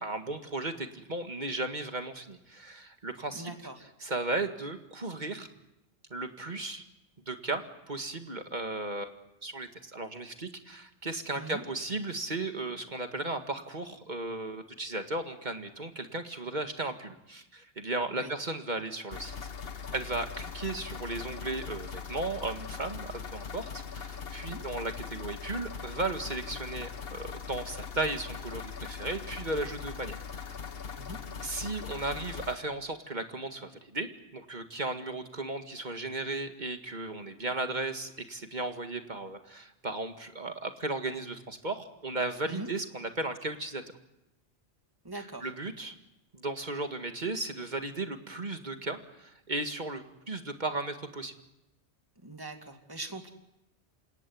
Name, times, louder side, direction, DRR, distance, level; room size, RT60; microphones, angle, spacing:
voice 1, 0.0-3.5 4.0-5.5 6.1-6.9 7.3-9.1 9.4-19.5 19.9-30.6 31.4-43.8 45.1-45.9 46.3-51.3, right 2 dB, 40° right, 6 dB, 2.1 m, -35 dB
voice 2, 3.3-3.8 11.4-11.6 18.1-18.3 24.5-24.6 30.9-31.2 42.5-42.7 45.0-45.5 52.2-53.3, right 2 dB, 20° right, 5 dB, 2.5 m, -41 dB
sound 1, 19.1-32.6, left 6 dB, 55° left, 1.3 m, -41 dB
27.5 x 18.0 x 9.5 m, 0.89 s
omnidirectional pair, 1.2 m